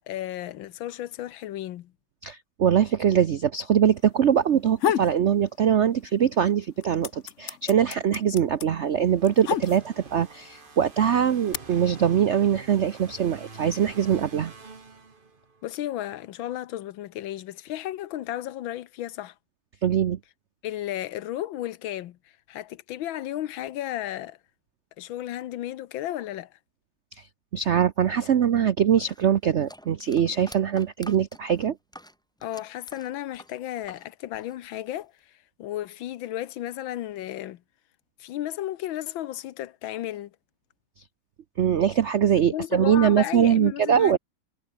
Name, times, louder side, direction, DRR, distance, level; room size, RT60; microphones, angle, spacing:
voice 1, 0.0-1.9 15.6-19.3 20.6-22.2 22.5-24.4 25.0-26.5 32.4-35.3 35.6-37.6 38.2-40.3 42.5-44.2, left 13 dB, 75° left, 1.6 m, -33 dB
voice 2, 2.2-14.5 19.8-20.2 27.2-27.3 27.5-31.8 41.6-44.2, right 8 dB, 75° right, 0.6 m, -22 dB
sound 1, 4.5-5.2 5.6-6.3 6.5-10.2 10.9-11.5, left 10 dB, 60° left, 0.8 m, -29 dB
sound 2, 9.0-15.7, right 4 dB, 25° right, 1.7 m, -46 dB
sound 3, 29.0-34.1 34.3-35.2, equal, ahead, 4.7 m, -47 dB
omnidirectional pair, 2.2 m